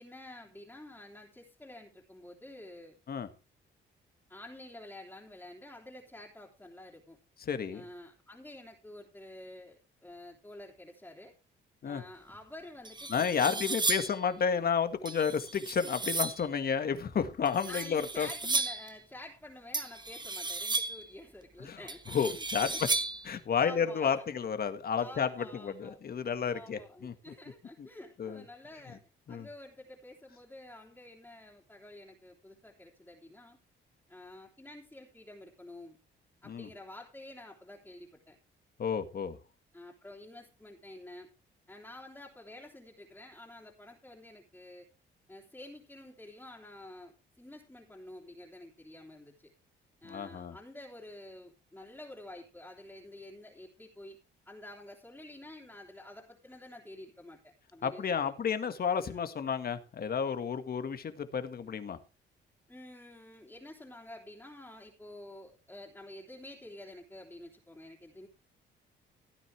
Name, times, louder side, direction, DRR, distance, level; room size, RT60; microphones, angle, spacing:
voice 1, 0.0-3.0 4.3-7.2 7.7-11.3 11.8-13.8 17.7-22.9 23.6-24.2 25.0-26.0 26.5-29.0 29.3-33.6 34.1-36.0 36.4-38.4 39.7-41.3 41.7-44.9 45.3-49.5 50.0-54.2 54.4-58.4 59.0-59.3 62.7-68.3, left 1 dB, 10° left, -4 dB, 3.3 m, -49 dB
voice 2, 7.4-7.8 11.8-12.0 13.1-18.3 21.6-21.8 22.1-22.7 23.2-27.1 28.2-28.4 29.3-29.5 36.4-36.7 38.8-39.4 50.0-50.5 57.8-62.0, left 6 dB, 50° left, 9 dB, 1.7 m, -31 dB
sound 1, 12.3-12.4 12.8-14.2 15.1-16.5 17.5-18.9 19.7-21.1 21.9-23.3, right 3 dB, 20° right, 1.3 m, -34 dB
16.5 x 9.2 x 3.4 m, 0.32 s
cardioid pair, 90°, 20 cm